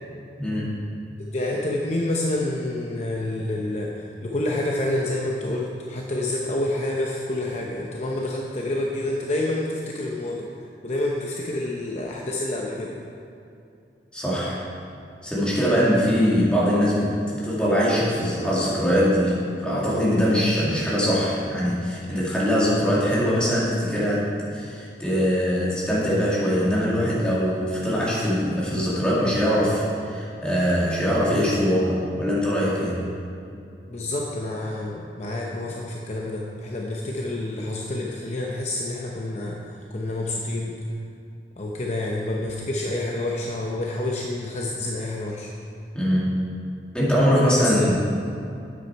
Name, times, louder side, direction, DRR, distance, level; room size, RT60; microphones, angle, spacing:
voice 1, 0.4-0.7 14.1-14.6 15.2-33.0 45.9-46.4 46.9-48.0, equal, 5° left, -8 dB, 2.1 m, -22 dB
voice 2, 1.3-10.5 10.8-13.0 33.9-39.6 39.9-40.8 41.6-45.5 47.4-47.9, left 1 dB, 40° left, -2 dB, 0.7 m, -28 dB
9.4 x 7.9 x 4.6 m, 2.6 s
head